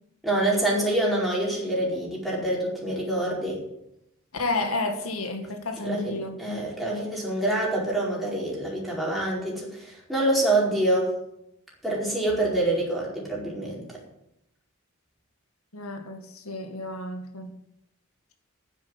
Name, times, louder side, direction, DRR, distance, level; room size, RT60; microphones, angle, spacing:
voice 1, 0.2-3.6 5.8-11.1 11.8-13.9, right 1 dB, ahead, -4 dB, 4.7 m, -26 dB
voice 2, 4.3-6.4 15.7-17.5, left 2 dB, 85° left, 5 dB, 2.0 m, -31 dB
9.9 x 8.4 x 9.6 m, 0.80 s
head